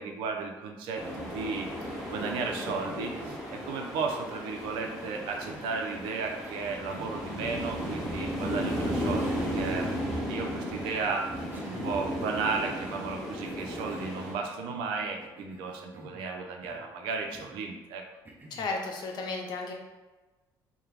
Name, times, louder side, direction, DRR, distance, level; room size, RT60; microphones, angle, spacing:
voice 1, 0.0-1.7 2.1-9.9 10.3-11.3 11.6-18.0, right 4 dB, 80° right, 2 dB, 0.4 m, -34 dB
sound 1, 0.9-14.3, equal, 5° right, 1.0 m, -35 dB
Cough, 1.5-3.7 4.5-5.8 6.4-7.2 8.6-8.7 9.2-9.6 9.9-10.0 11.5-12.1 12.6-13.0 13.4-14.9 15.2-16.3 16.6-16.9 17.3-17.6 18.2-18.7, right 2 dB, 20° right, 0.4 m, -50 dB
voice 2, 18.5-19.7, left 3 dB, 55° left, 1 dB, 0.5 m, -34 dB
2.3 x 2.1 x 3.2 m, 1.2 s
cardioid pair, 90°, 9 cm